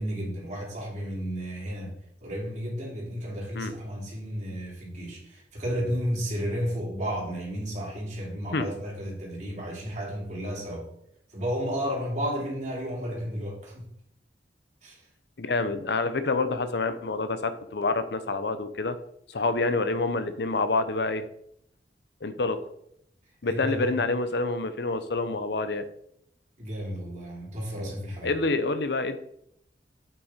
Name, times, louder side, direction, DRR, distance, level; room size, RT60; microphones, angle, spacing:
voice 1, 0.0-10.9 11.3-13.8 14.8-15.1 23.4-24.0 26.6-28.3, equal, 40° right, -3 dB, 3.2 m, -33 dB
voice 2, 15.4-19.0 19.3-21.2 22.2-22.6 23.4-25.8 28.2-29.2, left 3 dB, 65° left, 11 dB, 0.7 m, -27 dB
8.6 x 5.8 x 4.2 m, 0.72 s
head